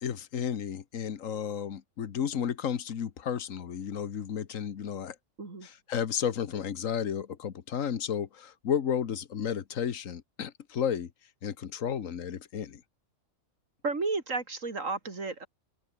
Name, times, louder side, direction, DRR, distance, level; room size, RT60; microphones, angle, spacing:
voice 1, 0.0-5.2 5.6-11.1 11.4-12.8, left 8 dB, 80° left, 1.6 m, -32 dB
voice 2, 13.8-15.5, right 3 dB, 75° right, 3.4 m, -32 dB
omnidirectional pair, 1.4 m